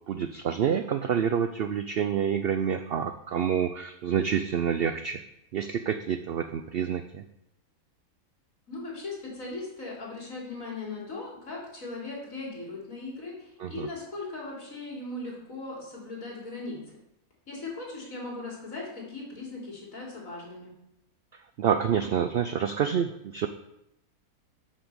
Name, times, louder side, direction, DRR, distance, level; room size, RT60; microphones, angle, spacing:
voice 1, 0.1-5.2 5.5-7.2 13.6-13.9 21.6-23.5, right 8 dB, 85° right, 9 dB, 0.5 m, -28 dB
voice 2, 8.7-16.8 17.5-20.7, left 3 dB, 60° left, -4 dB, 3.5 m, -38 dB
7.3 x 6.0 x 6.7 m, 0.81 s
omnidirectional pair, 1.6 m